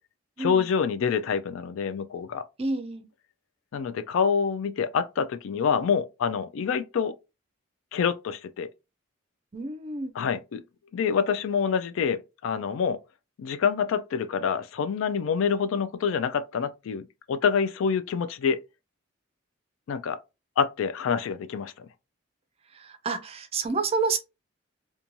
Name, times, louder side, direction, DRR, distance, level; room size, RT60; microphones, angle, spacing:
voice 1, 0.4-2.4 3.7-7.1 7.9-8.7 10.1-10.6 10.9-13.0 13.4-18.6 19.9-20.2 20.6-21.7, left 6 dB, 70° left, 0.3 m, -26 dB
voice 2, 2.6-3.0 9.5-10.1 22.7-24.2, right 4 dB, 30° right, 0.4 m, -29 dB
3.0 x 2.2 x 2.6 m
head